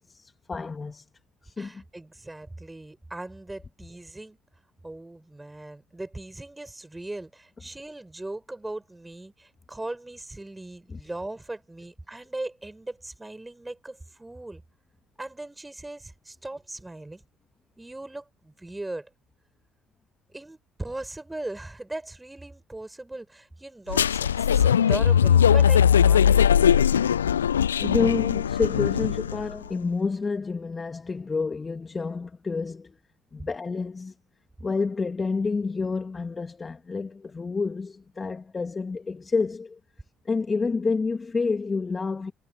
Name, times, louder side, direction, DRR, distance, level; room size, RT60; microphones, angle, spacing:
voice 1, 0.1-1.1 1.4-1.8 10.9-11.0 27.8-33.0 33.3-34.1 34.6-39.8 40.2-42.3, left 4 dB, 30° left, 2.5 m, -29 dB
voice 2, 1.6-4.4 4.8-14.6 15.2-17.2 17.8-19.1 20.3-26.8, right 2 dB, 10° right, 7.2 m, -38 dB
sound 1, 23.9-29.5, left 8 dB, 85° left, 0.5 m, -20 dB
figure-of-eight pair, 55°, 0 cm